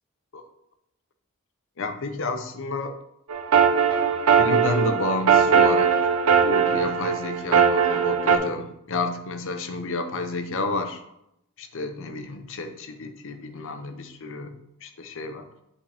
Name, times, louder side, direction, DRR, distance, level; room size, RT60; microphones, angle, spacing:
voice 1, 1.8-3.0 4.3-6.1 6.4-11.0 11.6-15.5, left 2 dB, 60° left, 8 dB, 0.7 m, -30 dB
sound 1, 3.3-8.4, right 7 dB, 80° right, 0.7 m, -20 dB
8.4 x 5.3 x 3.4 m, 0.82 s
head